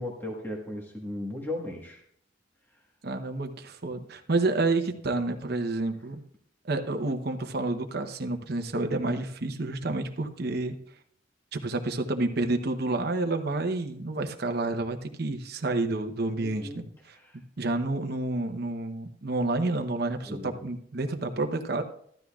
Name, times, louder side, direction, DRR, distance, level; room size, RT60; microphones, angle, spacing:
voice 1, 0.0-2.0 16.4-17.4 20.3-20.6, left 1 dB, 10° left, -1 dB, 1.4 m, -37 dB
voice 2, 3.0-6.2 6.6-10.8 11.5-16.8 17.6-21.8, right 2 dB, 55° right, 5 dB, 0.8 m, -29 dB
14.0 x 12.0 x 2.4 m, 0.66 s
head